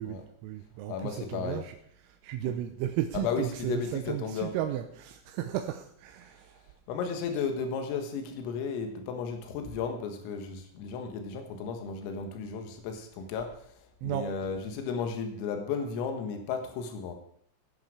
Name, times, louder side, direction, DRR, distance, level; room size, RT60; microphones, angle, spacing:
voice 1, 0.0-1.8 2.2-6.6 14.0-14.3, right 11 dB, 90° right, 5 dB, 3.5 m, -34 dB
voice 2, 0.9-1.6 2.5-2.6 3.1-4.5 6.9-13.5 14.0-17.2, left 5 dB, 85° left, 5 dB, 4.2 m, -34 dB
17.5 x 10.5 x 5.0 m, 0.65 s
omnidirectional pair, 5.9 m